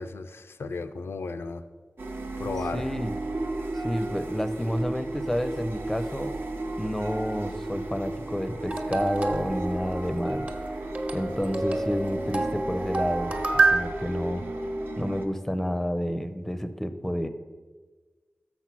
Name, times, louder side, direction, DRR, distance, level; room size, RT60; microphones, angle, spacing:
voice 1, 0.0-1.6 2.4-2.8, left 4 dB, 85° left, 9 dB, 0.4 m, -34 dB
sound 1, 2.0-15.3, right 2 dB, 65° right, 0.8 m, -34 dB
voice 2, 2.7-3.1 3.7-6.3 6.8-10.4 11.1-14.5 15.0-17.3, equal, 5° left, 11 dB, 0.5 m, -30 dB
sound 2, 8.7-13.8, right 3 dB, 35° right, 1.0 m, -28 dB
6.4 x 6.0 x 6.0 m, 1.4 s
wide cardioid pair, 65°, 4 cm